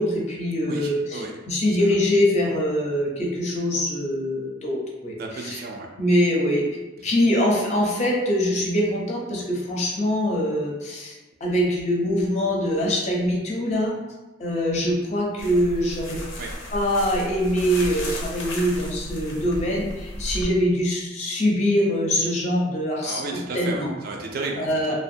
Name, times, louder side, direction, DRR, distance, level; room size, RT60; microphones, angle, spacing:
voice 1, 0.0-1.2 1.5-5.6 6.0-6.6 7.0-11.2 11.4-13.9 14.4-16.2 16.7-23.2 23.5-23.9 24.6-25.0, equal, 35° left, -2 dB, 0.5 m, -23 dB
voice 2, 0.7-1.3 1.7-1.9 5.2-5.9 16.4-16.5 23.0-25.0, right 3 dB, 50° right, 1 dB, 0.3 m, -33 dB
sound 1, 15.4-20.4, left 1 dB, 90° left, 0.5 m, -34 dB
2.4 x 2.1 x 2.6 m, 1.1 s
head